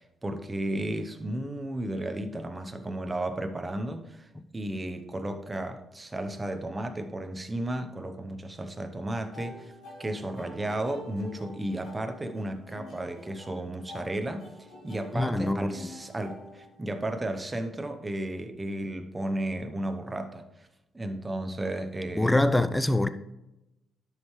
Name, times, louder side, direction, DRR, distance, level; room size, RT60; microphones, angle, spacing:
voice 1, 0.0-9.7 10.0-20.7 20.9-22.5, right 1 dB, 20° right, 0.9 m, -34 dB
sound 1, 9.3-17.3, left 1 dB, 75° left, 2.6 m, -47 dB
voice 2, 15.1-15.9 22.1-23.1, left 1 dB, 10° left, 0.5 m, -25 dB
10.5 x 6.6 x 3.2 m
cardioid pair, 90°, 0 cm